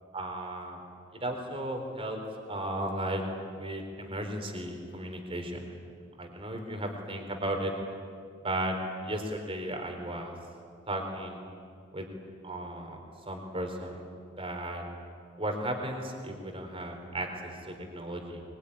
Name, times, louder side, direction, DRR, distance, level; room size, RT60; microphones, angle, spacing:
voice 1, 0.1-0.8 1.1-2.2 2.5-3.2 3.6-5.6 6.2-7.7 8.4-10.4 10.9-11.4 11.9-12.1 12.4-13.0 13.3-14.0 14.3-14.9 15.4-18.4, right 1 dB, 30° right, 4 dB, 4.0 m, -35 dB
23.5 x 23.5 x 10.0 m, 2.2 s
head